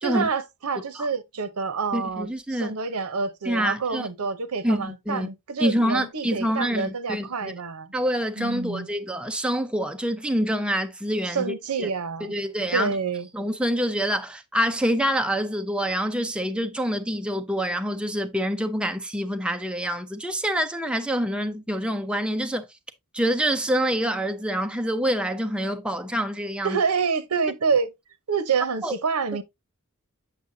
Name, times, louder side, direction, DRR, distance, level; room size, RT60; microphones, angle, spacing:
voice 1, 0.0-7.9 8.4-8.9 11.3-12.4 12.7-13.3 26.6-27.9 28.3-29.4, right 5 dB, 80° right, 0.8 m, -27 dB
voice 2, 1.9-2.7 3.5-4.1 4.6-5.3 5.6-7.5 7.9-11.9 12.2-12.9 13.3-22.7 23.1-26.8 28.8-28.9, equal, 5° right, 0.5 m, -26 dB
8.1 x 5.6 x 2.7 m
head